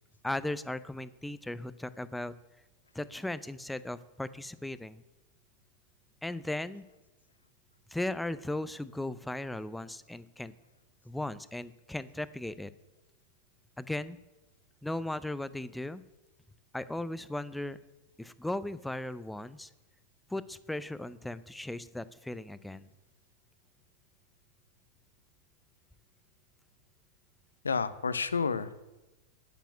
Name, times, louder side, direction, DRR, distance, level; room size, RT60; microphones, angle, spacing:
voice 1, 0.2-2.3 2.9-5.0 6.2-6.9 7.9-10.5 11.0-12.7 13.8-14.2 14.8-16.0 16.7-17.8 18.2-19.7 20.3-22.9, left 1 dB, 5° left, 16 dB, 0.6 m, -37 dB
voice 2, 27.6-28.8, left 5 dB, 75° left, 15 dB, 0.7 m, -30 dB
9.2 x 9.1 x 9.2 m, 1.0 s
figure-of-eight pair, 90°, 0 cm